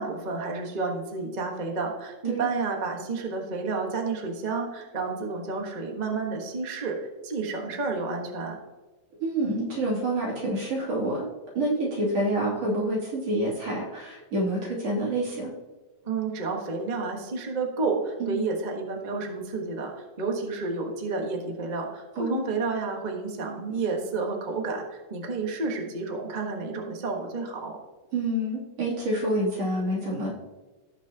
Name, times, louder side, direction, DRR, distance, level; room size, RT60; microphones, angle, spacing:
voice 1, 0.0-7.0 7.2-8.6 16.0-27.8, right 4 dB, 75° right, 1 dB, 0.4 m, -30 dB
voice 2, 9.2-11.3 11.6-15.5 18.2-18.4 22.2-22.4 28.1-30.4, right 1 dB, 60° right, -5 dB, 4.0 m, -27 dB
17.0 x 5.9 x 2.9 m, 1.2 s
omnidirectional pair, 3.3 m